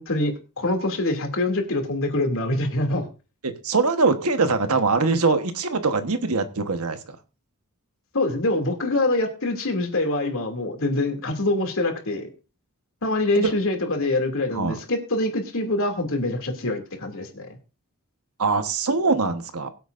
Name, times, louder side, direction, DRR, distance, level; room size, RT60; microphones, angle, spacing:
voice 1, 0.0-3.0 8.1-12.3 13.0-17.5, left 2 dB, 65° left, 4 dB, 2.7 m, -25 dB
voice 2, 3.4-7.2 13.3-13.5 14.5-14.8 18.4-19.7, right 4 dB, 75° right, 8 dB, 1.3 m, -22 dB
22.5 x 8.1 x 2.6 m, 0.33 s
head